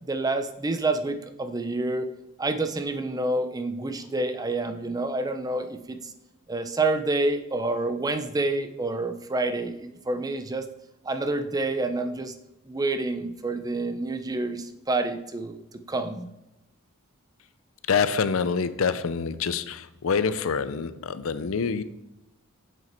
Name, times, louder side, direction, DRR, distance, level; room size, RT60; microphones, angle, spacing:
voice 1, 0.1-2.1 2.4-6.0 6.5-10.6 11.0-12.3 12.7-15.6 15.9-16.3, right 2 dB, 15° right, 0.5 m, -28 dB
voice 2, 17.9-21.8, left 5 dB, 70° left, 0.5 m, -26 dB
7.4 x 6.4 x 4.4 m
head